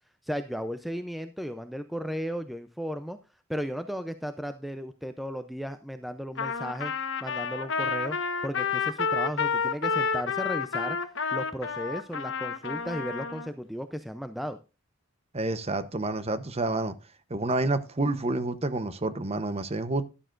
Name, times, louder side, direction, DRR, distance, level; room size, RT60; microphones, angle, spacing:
voice 1, 0.2-3.2 3.5-6.9 7.2-8.2 8.4-11.0 11.3-14.6, equal, ahead, 0.4 m, -35 dB
Trumpet, 6.4-13.5, left 5 dB, 60° left, 1.1 m, -30 dB
voice 2, 15.3-16.9 17.3-20.1, right 2 dB, 30° right, 0.8 m, -29 dB
12.5 x 11.5 x 2.5 m
head